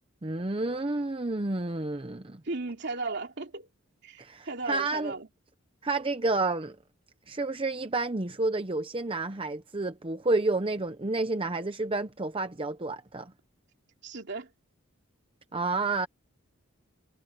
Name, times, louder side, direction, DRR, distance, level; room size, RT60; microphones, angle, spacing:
voice 1, 0.2-2.4 4.2-5.1 5.8-6.8 7.3-13.3 15.5-16.1, right 2 dB, 25° right, 0.8 m, -30 dB
voice 2, 2.4-3.7 4.0-5.3 14.0-14.5, right 3 dB, 55° right, 2.8 m, -36 dB
head